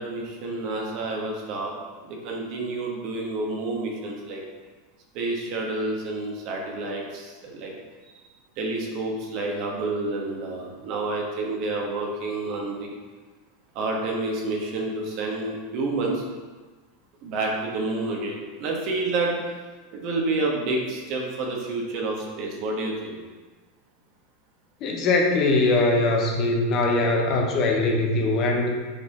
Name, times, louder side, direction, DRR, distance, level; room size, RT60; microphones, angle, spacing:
voice 1, 0.0-1.7 2.0-4.4 5.1-7.7 8.6-12.9 13.7-16.2 17.2-19.4 19.9-23.2, right 2 dB, 55° right, -1 dB, 1.4 m, -29 dB
voice 2, 24.8-28.7, left 2 dB, 45° left, 1 dB, 1.1 m, -21 dB
6.8 x 4.1 x 3.6 m, 1.3 s
hypercardioid pair, 90°, 0 cm